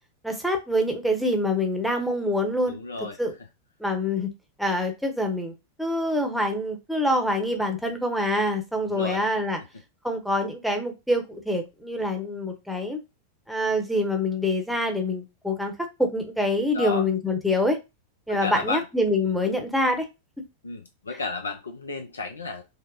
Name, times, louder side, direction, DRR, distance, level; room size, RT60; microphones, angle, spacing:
voice 1, 0.2-2.8 3.2-3.3 3.8-4.3 4.6-9.6 10.0-13.0 13.5-15.7 16.0-17.8 18.3-20.0, left 1 dB, ahead, 3 dB, 0.8 m, -25 dB
voice 2, 2.7-3.2 8.9-9.2 16.7-17.0 18.3-18.8 20.6-22.6, left 4 dB, 75° left, 4 dB, 0.4 m, -32 dB
3.9 x 2.1 x 2.5 m, 0.24 s
figure-of-eight pair, 90°, 0 cm